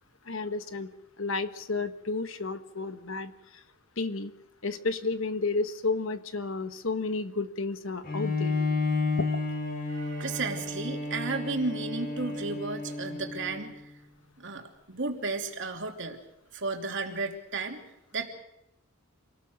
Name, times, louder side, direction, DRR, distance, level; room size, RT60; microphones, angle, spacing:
voice 1, 0.2-0.9 1.2-3.6 4.0-4.3 4.6-8.6 9.2-9.3, left 3 dB, 60° left, 10 dB, 1.3 m, -32 dB
Bowed string instrument, 8.0-13.7, left 3 dB, 45° left, 5.0 m, -31 dB
voice 2, 9.9-13.9 14.4-16.2 16.5-17.8 18.1-18.3, right 3 dB, 55° right, 3 dB, 3.0 m, -33 dB
27.0 x 19.0 x 6.5 m, 0.84 s
head